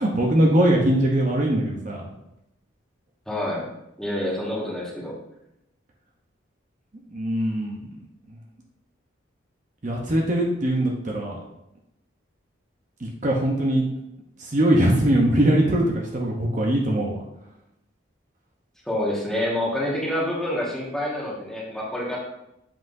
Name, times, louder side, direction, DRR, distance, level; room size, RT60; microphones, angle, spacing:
voice 1, 0.0-2.1 7.1-7.9 9.8-11.4 13.0-13.8 14.4-17.2, right 1 dB, 40° right, -2 dB, 0.8 m, -21 dB
voice 2, 3.3-3.7 4.0-5.1 18.8-22.2, left 1 dB, 5° left, -5 dB, 1.6 m, -27 dB
7.7 x 5.8 x 2.6 m, 0.84 s
head